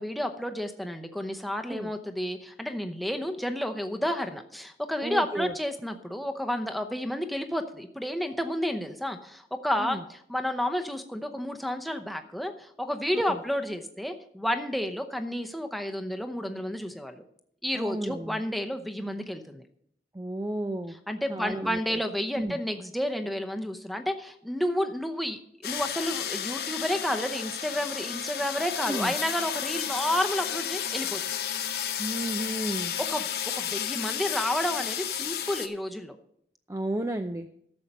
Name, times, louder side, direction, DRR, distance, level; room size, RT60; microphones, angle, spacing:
voice 1, 0.0-17.2 17.6-19.6 20.9-31.2 33.0-33.2 33.5-36.2, equal, ahead, 5 dB, 0.7 m, -31 dB
voice 2, 5.0-5.5 9.8-10.0 13.3-13.4 17.7-18.4 20.1-21.0 21.3-21.8 22.4-22.6 28.9-29.1 32.0-32.9 36.7-37.5, right 1 dB, 15° right, 7 dB, 0.4 m, -32 dB
sound 1, 25.6-35.7, left 9 dB, 60° left, 0.9 m, -32 dB
12.0 x 7.4 x 5.3 m, 0.69 s
head